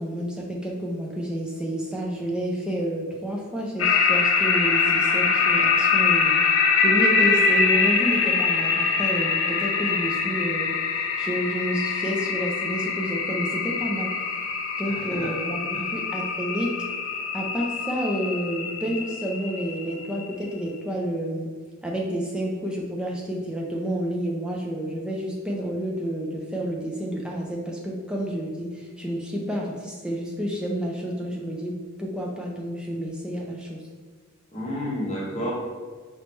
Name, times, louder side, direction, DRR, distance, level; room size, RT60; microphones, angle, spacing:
voice 1, 0.0-10.8 11.2-14.1 14.8-16.9 17.3-21.5 21.8-33.8, equal, 5° right, -2 dB, 0.5 m, -29 dB
sound 1, 3.8-20.5, left 5 dB, 70° left, 0.4 m, -24 dB
voice 2, 14.9-15.3 15.7-15.8 34.5-35.5, equal, 30° left, -4 dB, 1.0 m, -31 dB
4.6 x 3.0 x 3.3 m, 1.5 s
head